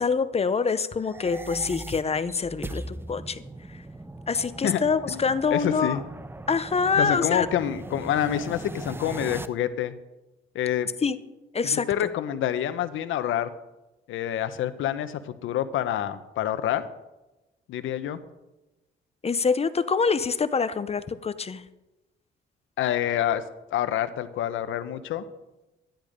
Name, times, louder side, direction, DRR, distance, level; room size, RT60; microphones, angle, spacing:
voice 1, 0.0-3.4 4.3-6.0 6.5-7.5 11.0-11.2 11.5-11.9 19.2-21.6, left 5 dB, 30° left, 13 dB, 0.7 m, -25 dB
sound 1, 1.0-9.5, right 2 dB, 10° right, 0.6 m, -39 dB
voice 2, 5.5-6.0 7.0-9.9 10.5-10.9 11.7-13.5 14.1-16.9 17.7-18.2 22.8-23.4 23.7-25.2, left 11 dB, 80° left, 12 dB, 0.9 m, -27 dB
12.5 x 10.5 x 5.1 m, 1.0 s
cardioid pair, 90°, 20 cm